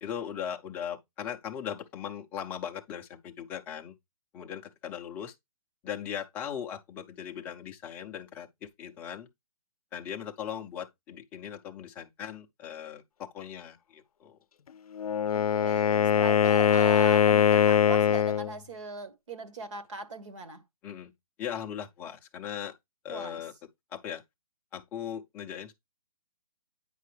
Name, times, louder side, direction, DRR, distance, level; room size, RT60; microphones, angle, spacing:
voice 1, 0.0-3.9 4.3-5.3 5.8-8.5 8.8-9.3 9.9-14.4 20.8-21.1 21.4-22.7 23.0-23.5 23.9-24.2 24.7-25.7, left 9 dB, 10° left, 0.5 m, -38 dB
Wind instrument woodwind instrument, 14.9-18.5, left 9 dB, 75° left, 0.5 m, -22 dB
voice 2, 15.3-20.6 23.1-23.4, right 3 dB, 55° right, 1.8 m, -39 dB
9.2 x 5.4 x 3.3 m
hypercardioid pair, 165°, 19 cm